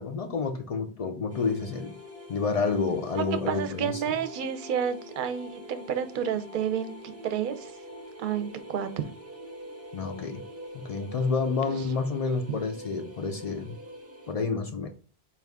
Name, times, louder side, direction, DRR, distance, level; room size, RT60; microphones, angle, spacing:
voice 1, 0.0-1.9 2.3-4.0 9.9-10.4 10.7-13.8 14.3-14.9, left 4 dB, 60° left, 5 dB, 0.4 m, -29 dB
sound 1, 1.3-14.3, equal, 20° right, 0.4 m, -45 dB
voice 2, 3.1-7.7 8.2-8.9 11.7-11.8 12.5-12.6, right 8 dB, 60° right, 9 dB, 0.6 m, -30 dB
4.5 x 2.4 x 3.4 m, 0.36 s
omnidirectional pair, 1.1 m